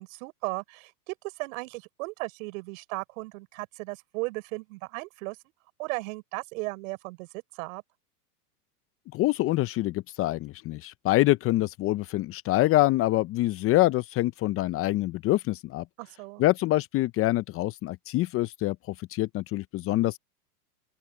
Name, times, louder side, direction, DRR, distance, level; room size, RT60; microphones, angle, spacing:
voice 1, 0.0-5.4 5.8-7.8 16.0-16.4, right 25 dB, 60° right, 6.0 m, -36 dB
voice 2, 9.1-15.8 16.4-20.2, left 17 dB, 30° left, 0.7 m, -25 dB
open air
hypercardioid pair, 115°, 47 cm